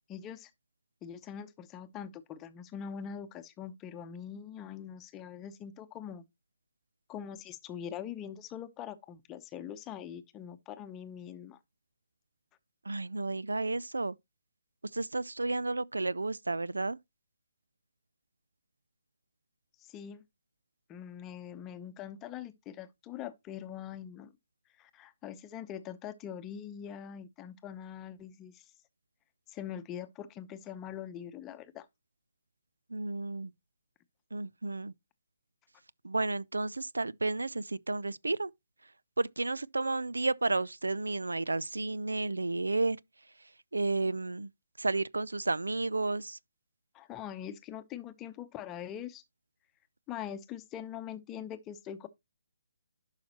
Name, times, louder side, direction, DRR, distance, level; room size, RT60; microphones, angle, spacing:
voice 1, 0.1-0.5 1.0-6.2 7.1-11.6 19.8-20.2 20.9-24.3 24.8-28.6 29.5-31.9 46.9-49.2 50.1-52.1, left 9 dB, 20° left, 0.8 m, -43 dB
voice 2, 12.8-14.2 14.9-17.0 32.9-33.5 34.3-34.9 36.0-38.5 39.2-43.0 43.7-44.5 44.8-46.4, right 3 dB, 85° right, 0.3 m, -32 dB
11.5 x 5.7 x 2.9 m
figure-of-eight pair, 145°, 0 cm